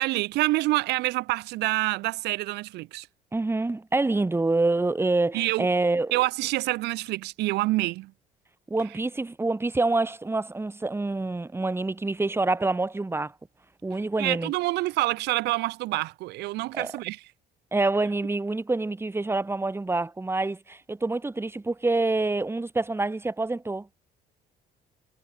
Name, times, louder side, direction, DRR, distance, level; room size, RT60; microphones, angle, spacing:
voice 1, 0.0-3.1 5.3-5.7 6.1-8.1 14.2-17.3, right 19 dB, 90° right, 4.7 m, -27 dB
voice 2, 3.3-6.1 8.7-13.3 13.8-14.5 16.7-16.9 17.7-23.9, right 2 dB, 15° right, 4.1 m, -26 dB
cardioid pair, 110°, 17 cm